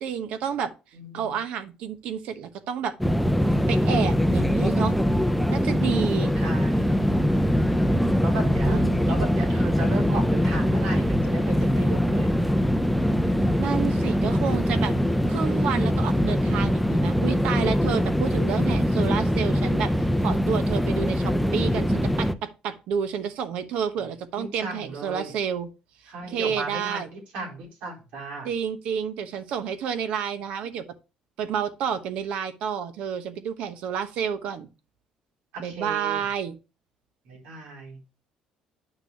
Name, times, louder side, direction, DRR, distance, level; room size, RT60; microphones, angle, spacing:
voice 1, 0.0-0.7 1.1-2.9 3.7-5.0 5.5-6.3 8.7-9.1 13.6-14.9 15.3-19.9 20.2-25.7 26.3-27.1 28.4-30.8 31.4-34.7 35.6-36.6, right 7 dB, 70° right, 1.1 m, -30 dB
voice 2, 0.9-1.4 6.3-7.0 8.2-12.3 24.0-25.3 26.1-28.5 35.5-36.3 37.2-38.0, right 2 dB, 85° right, 4.0 m, -36 dB
sound 1, 3.0-22.3, equal, ahead, 0.5 m, -22 dB
9.7 x 6.0 x 2.8 m
cardioid pair, 140°, 2 cm